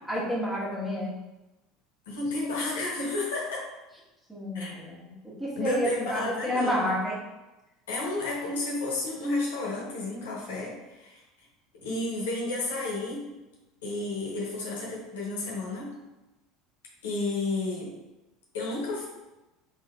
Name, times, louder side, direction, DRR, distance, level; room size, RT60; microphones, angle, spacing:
voice 1, 0.1-1.1 4.3-5.1 5.4-7.2, equal, 10° right, -6 dB, 1.5 m, -29 dB
voice 2, 2.1-3.6 4.5-4.7 5.5-6.9 7.9-11.2 11.7-13.3 13.8-15.9 17.0-17.9 18.5-19.1, left 2 dB, 75° left, -3 dB, 1.0 m, -31 dB
3.9 x 3.7 x 2.4 m, 1.0 s
hypercardioid pair, 75°, 0 cm